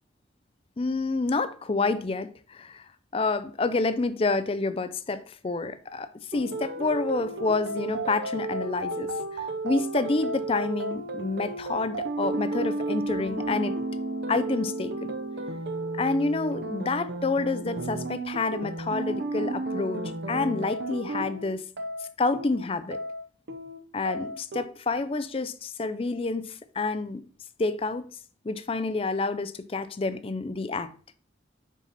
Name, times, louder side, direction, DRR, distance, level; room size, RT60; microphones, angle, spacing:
voice 1, 0.8-2.8 3.1-9.1 9.6-13.7 14.3-15.1 15.9-21.6 22.2-23.0 23.9-27.2 27.6-28.1 28.4-30.9, left 3 dB, 30° left, 0.4 m, -28 dB
sound 1, 6.3-24.6, right 2 dB, 65° right, 0.7 m, -33 dB
7.3 x 4.1 x 4.1 m
head